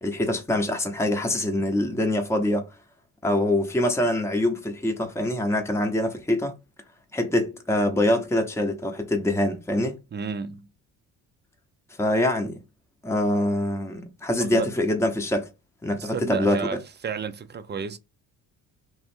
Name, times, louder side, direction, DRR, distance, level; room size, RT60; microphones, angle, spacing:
voice 1, 0.0-2.7 3.2-6.5 7.1-10.0 12.0-12.6 13.0-15.5 15.8-16.6, left 1 dB, 5° left, 0.8 m, -24 dB
voice 2, 10.1-10.7 14.4-14.7 15.9-16.8 17.0-18.0, right 6 dB, 25° right, 0.5 m, -31 dB
3.1 x 2.4 x 4.3 m
supercardioid pair, 70°, 43 cm